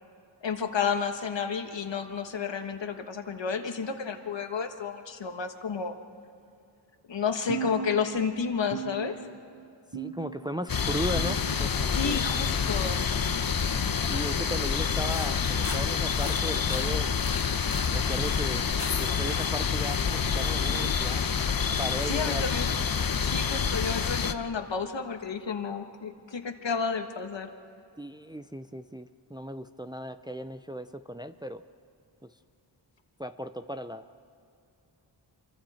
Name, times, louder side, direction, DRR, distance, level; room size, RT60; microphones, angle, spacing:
voice 1, 0.4-5.9 7.1-9.2 11.9-13.0 22.1-22.7 23.2-27.5, left 6 dB, 70° left, 6 dB, 1.5 m, -31 dB
sound 1, 7.5-8.3 8.7-9.5 9.9-10.5 11.1-11.8 12.4-12.7 13.6-13.8 14.8-15.0 16.0-16.2 17.2-17.4 18.5-18.7 19.7-19.9 20.9-21.0 22.1-22.2, right 6 dB, 50° right, 5.6 m, -39 dB
voice 2, 9.9-12.2 14.1-17.1 17.9-18.7 19.0-21.2 21.8-22.4 28.0-31.6 33.2-34.1, equal, 10° right, 9 dB, 0.6 m, -36 dB
sound 2, 10.7-24.3, left 6 dB, 50° left, 0.9 m, -27 dB
sound 3, 15.0-20.5, left 3 dB, 30° left, 1.4 m, -42 dB
27.0 x 24.0 x 4.3 m, 2.6 s
wide cardioid pair, 70°, 46 cm